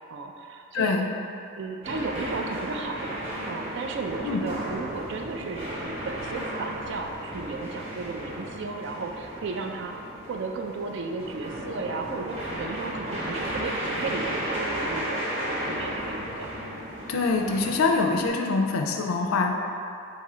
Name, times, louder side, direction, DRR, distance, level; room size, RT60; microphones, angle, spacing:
voice 1, 0.1-0.9 1.6-9.9 10.3-16.5, right 3 dB, 55° right, 3 dB, 0.3 m, -34 dB
voice 2, 0.7-1.1 4.2-4.4 17.1-19.5, left 4 dB, 80° left, 2 dB, 0.4 m, -24 dB
sound 1, 1.8-18.3, right 1 dB, 30° right, 0.8 m, -34 dB
3.8 x 2.7 x 4.2 m, 2.5 s
head